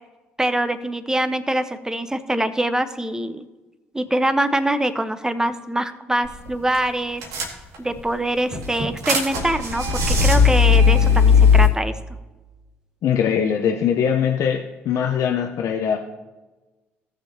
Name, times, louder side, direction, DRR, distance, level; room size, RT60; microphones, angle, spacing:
voice 1, 0.4-3.4 3.9-7.2 7.8-11.9, right 1 dB, 10° right, 11 dB, 1.0 m, -24 dB
sound 1, 6.2-6.5 6.7-6.8 7.2-8.0 8.5-11.7, left 5 dB, 70° right, 1.8 m, -17 dB
voice 2, 13.0-16.0, left 8 dB, 60° left, 2 dB, 0.8 m, -21 dB
17.5 x 6.6 x 2.8 m, 1.2 s
hypercardioid pair, 50°, 6 cm